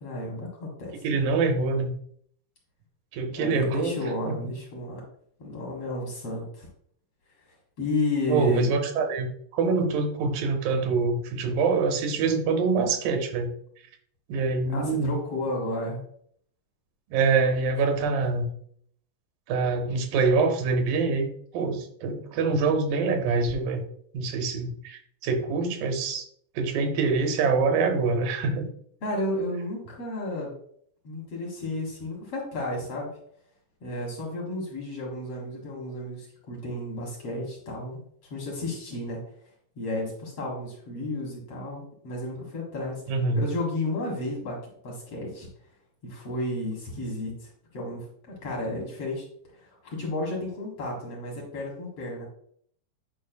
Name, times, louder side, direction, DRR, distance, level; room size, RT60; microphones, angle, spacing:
voice 1, 0.0-1.2 3.3-5.0 5.4-6.7 7.8-8.7 14.7-16.0 29.0-30.5 31.0-33.1 33.8-38.0 38.3-39.2 39.8-43.0 43.3-44.6 44.8-45.5 46.0-49.2 49.5-52.3, left 1 dB, 50° left, -2 dB, 2.2 m, -32 dB
voice 2, 1.0-2.0 3.1-3.9 4.3-4.4 8.3-9.3 9.5-13.5 14.3-15.1 17.1-18.5 19.5-21.3 21.5-23.9 24.1-26.3 26.6-28.7 43.1-43.5, right 4 dB, 90° right, 5 dB, 2.6 m, -25 dB
9.0 x 5.3 x 2.3 m, 0.63 s
omnidirectional pair, 3.9 m